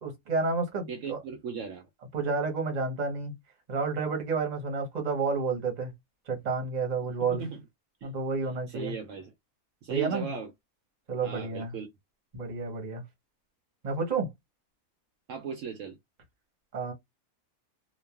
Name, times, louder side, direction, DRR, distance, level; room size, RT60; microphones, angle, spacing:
voice 1, 0.0-1.2 2.1-3.4 3.7-5.9 6.3-7.4 8.0-8.9 9.9-10.3 11.1-11.8 12.3-13.0 13.8-14.3 16.7-16.9, right 4 dB, 35° right, 0.9 m, -30 dB
voice 2, 0.9-1.9 7.3-7.6 8.0-8.1 8.7-9.3 9.8-10.5 11.2-11.9 15.3-16.0, right 6 dB, 70° right, 0.9 m, -37 dB
3.0 x 2.2 x 2.3 m
omnidirectional pair, 1.5 m